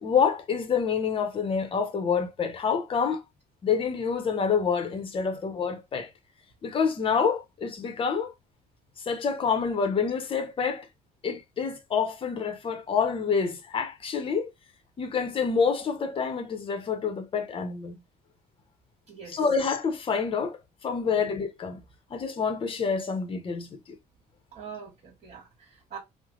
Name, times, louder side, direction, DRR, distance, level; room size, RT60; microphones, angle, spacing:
voice 1, 0.0-3.2 3.6-6.1 6.6-8.3 9.1-10.9 11.2-14.5 15.0-17.9 19.3-20.6 20.8-21.8 22.1-24.0, left 6 dB, 30° left, 0.7 m, -27 dB
voice 2, 19.1-19.4 21.0-21.2 24.5-26.0, right 6 dB, 45° right, 1.5 m, -44 dB
3.2 x 2.1 x 3.7 m
cardioid pair, 110°, 17 cm